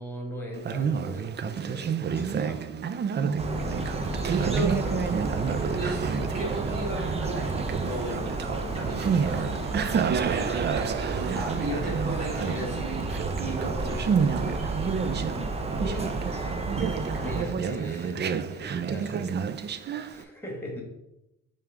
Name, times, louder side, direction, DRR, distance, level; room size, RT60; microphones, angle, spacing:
voice 1, 0.0-2.7 5.6-5.9 11.1-11.3 15.8-16.2 17.2-19.3 19.7-20.8, equal, 5° left, 1 dB, 1.9 m, -40 dB
Conversation, 0.5-20.2, right 7 dB, 35° right, 0.4 m, -30 dB
sound 1, 3.4-17.4, right 2 dB, 20° right, 0.8 m, -32 dB
voice 2, 3.5-4.0 4.3-5.1 5.8-6.0 6.3-11.1 11.3-13.1 13.4-14.6, right 1 dB, 55° right, -5 dB, 2.2 m, -36 dB
5.4 x 3.4 x 5.0 m, 0.88 s
cardioid pair, 90°, 30 cm